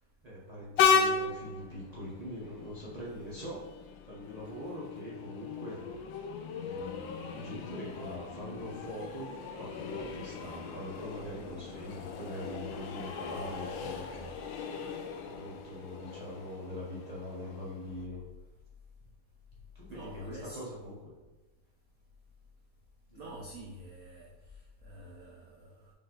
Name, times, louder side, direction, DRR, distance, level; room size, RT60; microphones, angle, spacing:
voice 1, 0.2-3.6 4.1-5.8 6.6-14.3 15.2-18.2 19.7-20.9 23.1-23.4, equal, 60° right, -8 dB, 0.4 m, -43 dB
Train, 0.8-18.1, left 6 dB, 75° left, 1.2 m, -36 dB
voice 2, 19.9-20.7 23.1-24.3 24.8-25.9, right 1 dB, 80° right, -2 dB, 0.7 m, -47 dB
5.3 x 2.5 x 3.9 m, 1.2 s
omnidirectional pair, 2.3 m